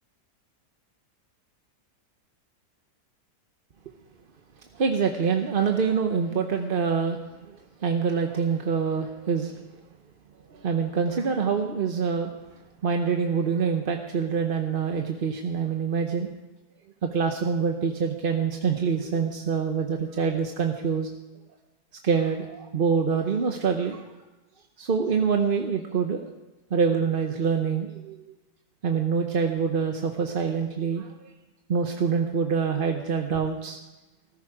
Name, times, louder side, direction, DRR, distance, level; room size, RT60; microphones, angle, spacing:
voice 1, 4.7-9.6 10.5-12.3 12.8-16.3 17.0-21.1 22.0-24.0 24.8-26.3 26.7-28.2 28.8-31.3 31.7-33.8, right 6 dB, 45° right, 4 dB, 0.8 m, -25 dB
14.5 x 13.5 x 4.8 m, 1.1 s
omnidirectional pair, 1.7 m